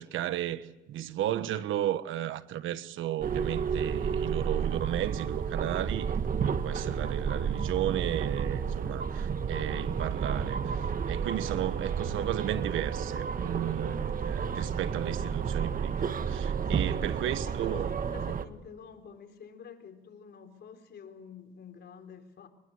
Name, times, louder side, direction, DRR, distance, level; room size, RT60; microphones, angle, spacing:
voice 1, 0.0-17.9, right 12 dB, 85° right, 1.3 m, -34 dB
sound 1, 3.2-18.5, right 6 dB, 45° right, 1.5 m, -31 dB
voice 2, 16.7-22.5, left 7 dB, 60° left, 4.1 m, -49 dB
25.0 x 22.0 x 8.1 m
cardioid pair, 90°, 20 cm